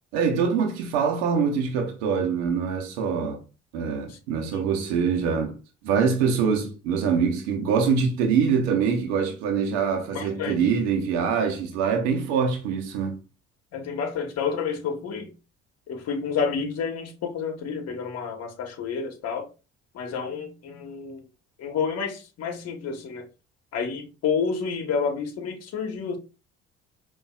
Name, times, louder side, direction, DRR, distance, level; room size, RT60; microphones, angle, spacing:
voice 1, 0.1-3.4 3.7-5.6 5.8-13.2, right 6 dB, 80° right, 0.9 m, -24 dB
voice 2, 10.1-10.6 13.7-15.3 15.9-19.5 19.9-21.2 21.6-23.3 23.7-26.2, left 6 dB, 50° left, 1.1 m, -29 dB
5.3 x 2.6 x 2.3 m
hypercardioid pair, 60°, 32 cm